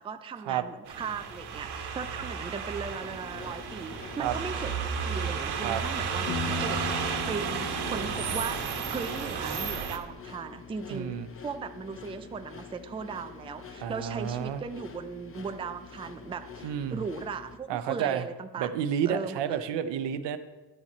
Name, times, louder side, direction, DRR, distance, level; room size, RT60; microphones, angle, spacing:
voice 1, 0.0-4.7 5.0-18.7 19.1-19.8, right 5 dB, 15° right, 9 dB, 0.3 m, -38 dB
sound 1, 0.9-10.0, right 6 dB, 65° right, 1.2 m, -33 dB
sound 2, 3.0-17.6, left 6 dB, 30° left, 0.7 m, -47 dB
Piano, 6.3-10.0, left 6 dB, 80° left, 1.3 m, -39 dB
voice 2, 10.9-11.3 13.8-14.6 16.6-17.0 17.7-18.2 18.6-20.4, right 9 dB, 80° right, 11 dB, 0.7 m, -30 dB
11.0 x 7.2 x 4.3 m, 1.2 s
cardioid pair, 110°, 42 cm